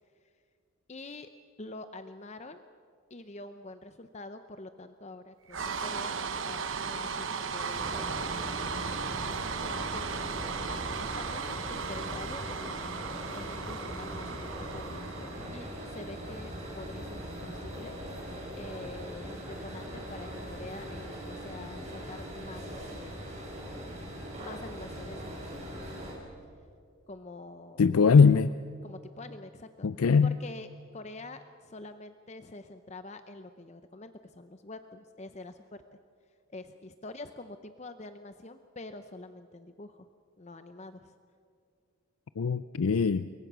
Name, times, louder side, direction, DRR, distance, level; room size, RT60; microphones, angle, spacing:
voice 1, 0.9-1.3 1.6-2.6 3.1-8.1 9.6-10.7 11.0-23.3 24.4-25.9 27.1-27.9 28.2-28.4 28.8-29.9 30.2-35.8 36.5-40.1 40.4-41.1, left 2 dB, 30° left, 9 dB, 0.7 m, -46 dB
sound 1, 5.5-15.8, right 5 dB, 65° right, 1.1 m, -36 dB
sound 2, 7.7-26.1, equal, 30° right, 5.9 m, -40 dB
voice 2, 27.8-28.5 29.8-30.4 42.4-43.3, left 5 dB, 85° left, 14 dB, 0.5 m, -21 dB
28.5 x 22.5 x 6.2 m, 2.4 s
head